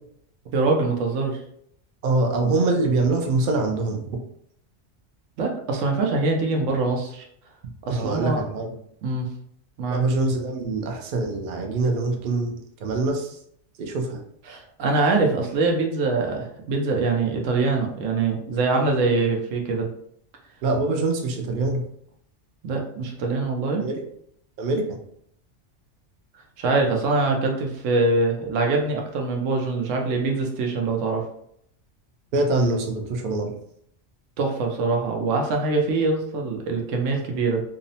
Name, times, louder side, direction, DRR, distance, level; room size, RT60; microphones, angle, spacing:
voice 1, 0.5-1.4 5.4-7.2 7.8-8.4 9.0-9.3 9.8-10.0 14.5-19.9 22.6-23.8 26.6-31.3 34.4-37.6, right 3 dB, 90° right, 2 dB, 1.0 m, -23 dB
voice 2, 2.0-4.0 7.9-8.7 9.9-12.5 12.8-13.4 13.8-14.2 20.6-21.8 23.8-24.0 24.6-24.8 32.3-33.5, right 2 dB, 60° right, 2 dB, 0.6 m, -24 dB
2.7 x 2.0 x 2.6 m, 0.69 s
omnidirectional pair, 1.3 m